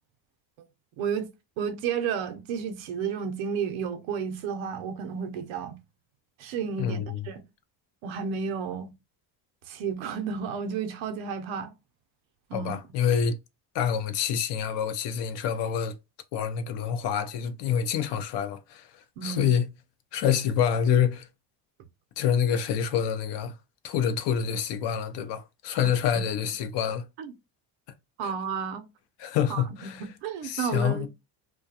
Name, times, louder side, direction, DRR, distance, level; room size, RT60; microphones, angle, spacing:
voice 1, 1.0-1.3 1.6-5.8 6.4-7.0 7.2-7.4 8.0-8.9 9.7-11.7 12.5-12.7 19.2-19.6 27.2-27.3 28.2-28.8 29.5-31.1, right 6 dB, 85° right, 0.7 m, -32 dB
voice 2, 6.8-7.2 12.5-13.4 13.7-15.9 16.3-18.9 19.2-19.6 20.1-21.3 22.2-23.5 23.8-27.0 29.2-30.0 30.4-31.1, left 8 dB, 65° left, 0.6 m, -27 dB
2.4 x 2.2 x 2.7 m
cardioid pair, 100°, 46 cm